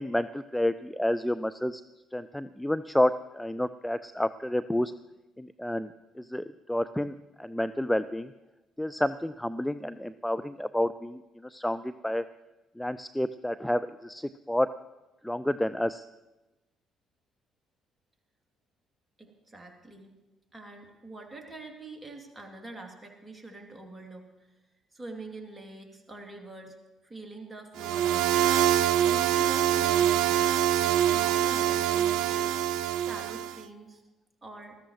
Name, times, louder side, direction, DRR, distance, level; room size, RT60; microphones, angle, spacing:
voice 1, 0.0-1.8 2.1-4.9 5.4-8.3 8.8-12.2 12.8-14.7 15.2-16.1, left 1 dB, 5° left, 13 dB, 0.4 m, -30 dB
voice 2, 19.2-20.1 20.5-24.2 24.9-26.8 27.0-28.6 28.9-30.5 30.8-32.6 33.0-34.0 34.4-34.8, right 2 dB, 20° right, 1 dB, 3.0 m, -45 dB
sound 1, 27.8-33.6, right 10 dB, 65° right, 0.3 m, -25 dB
19.5 x 14.0 x 3.2 m, 1.1 s
figure-of-eight pair, 45°, 0 cm